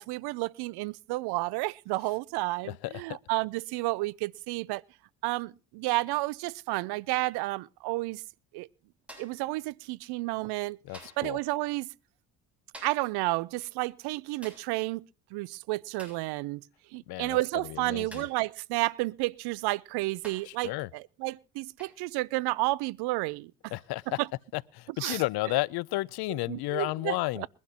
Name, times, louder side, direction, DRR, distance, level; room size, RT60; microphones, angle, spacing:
voice 1, 0.0-4.8 5.2-8.2 8.5-8.7 9.2-10.8 11.2-11.9 12.8-15.0 15.3-16.6 16.9-23.7 24.2-24.3 25.0-25.2 26.3-27.5, right 21 dB, 70° right, 0.6 m, -31 dB
voice 2, 2.6-3.2 10.8-11.4 17.1-17.4 17.6-18.2 20.5-20.9 23.7-24.2 24.5-27.5, left 19 dB, 65° left, 0.6 m, -32 dB
sound 1, 9.1-9.5 10.9-11.3 12.7-13.1 14.4-14.7 16.0-16.3 18.1-18.5 19.5-19.6 20.2-20.6 21.8-22.0 23.7-23.9, right 1 dB, 5° right, 7.2 m, -49 dB
22.5 x 11.5 x 2.9 m
hypercardioid pair, 60°, 41 cm